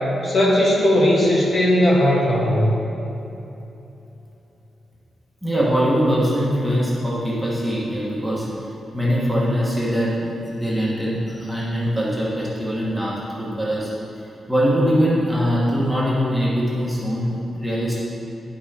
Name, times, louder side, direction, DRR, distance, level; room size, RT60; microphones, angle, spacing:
voice 1, 0.2-2.7, left 1 dB, 40° left, -4 dB, 1.4 m, -17 dB
voice 2, 5.4-8.5 8.9-13.9 14.5-18.0, equal, ahead, -7 dB, 1.3 m, -22 dB
10.0 x 5.6 x 4.3 m, 3.0 s
wide cardioid pair, 165°, 0 cm